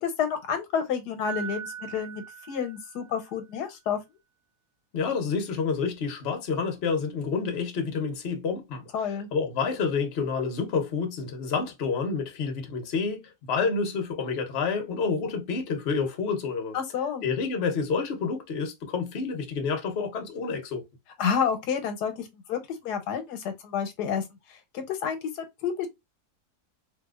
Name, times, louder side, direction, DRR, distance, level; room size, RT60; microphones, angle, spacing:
voice 1, 0.0-4.0 8.9-9.3 16.7-17.2 21.2-24.2 24.7-25.9, left 7 dB, 85° left, 1.3 m, -29 dB
Piano, 1.2-3.4, right 8 dB, 80° right, 1.5 m, -39 dB
voice 2, 4.9-16.8 17.2-20.8, left 5 dB, 50° left, 1.0 m, -29 dB
3.5 x 2.7 x 2.3 m
omnidirectional pair, 1.7 m